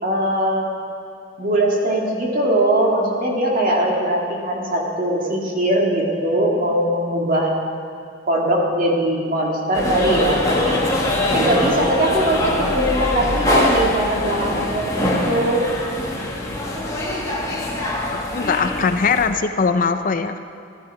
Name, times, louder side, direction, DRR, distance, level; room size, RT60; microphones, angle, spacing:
voice 1, 0.0-0.7 1.4-7.5 8.3-10.8 11.3-15.7, right 1 dB, 45° right, -1 dB, 2.2 m, -20 dB
sound 1, 9.7-19.3, left 1 dB, 15° left, 1.8 m, -23 dB
voice 2, 18.1-20.4, left 5 dB, 45° left, 9 dB, 0.5 m, -21 dB
14.5 x 12.0 x 4.8 m, 2.5 s
head